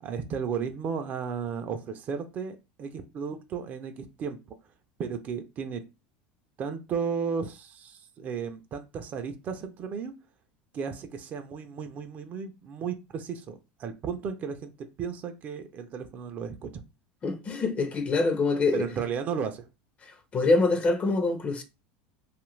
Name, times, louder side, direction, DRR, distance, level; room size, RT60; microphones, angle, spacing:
voice 1, 0.0-4.4 5.0-5.8 6.6-10.1 10.7-14.7 15.0-16.8 18.7-19.7, right 6 dB, 35° right, 0.5 m, -34 dB
voice 2, 17.2-18.8 20.3-21.6, left 3 dB, 25° left, 0.5 m, -25 dB
2.6 x 2.4 x 3.1 m
supercardioid pair, 135°, 5 cm